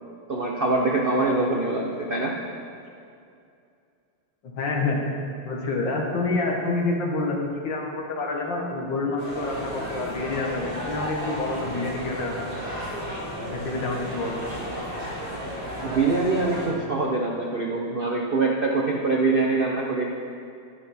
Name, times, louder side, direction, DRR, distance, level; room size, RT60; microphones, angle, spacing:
voice 1, 0.3-2.3 15.8-20.1, right 3 dB, 70° right, -1 dB, 0.5 m, -24 dB
voice 2, 4.4-5.0 5.4-12.5 13.4-14.5, left 3 dB, 65° left, -1 dB, 2.1 m, -28 dB
sound 1, 9.2-16.7, equal, 30° right, 3.2 m, -33 dB
11.0 x 10.5 x 4.3 m, 2.5 s
omnidirectional pair, 2.2 m